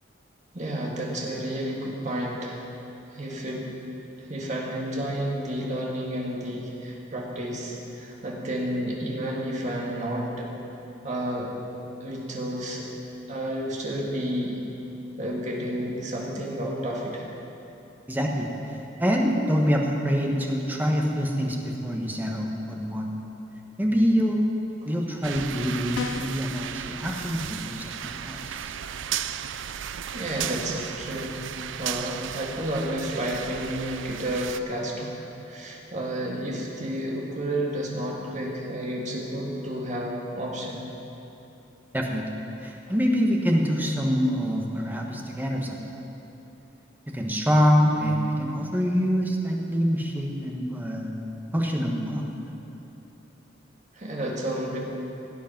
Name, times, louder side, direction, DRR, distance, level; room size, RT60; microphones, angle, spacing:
voice 1, 0.5-2.6 3.1-3.7 4.2-10.5 11.0-11.5 12.0-12.9 13.3-14.6 15.2-17.3 30.1-35.1 35.4-40.9 53.9-54.8, right 1 dB, 40° right, -2 dB, 2.0 m, -31 dB
voice 2, 18.1-23.1 23.8-24.4 24.8-28.7 41.9-45.8 47.1-51.1 51.5-52.3, equal, 10° right, 0 dB, 1.2 m, -25 dB
sound 1, 25.2-34.6, right 9 dB, 75° right, 0.4 m, -35 dB
sound 2, 25.9-26.5, left 6 dB, 80° left, 0.4 m, -33 dB
17.0 x 8.4 x 5.9 m, 2.9 s
head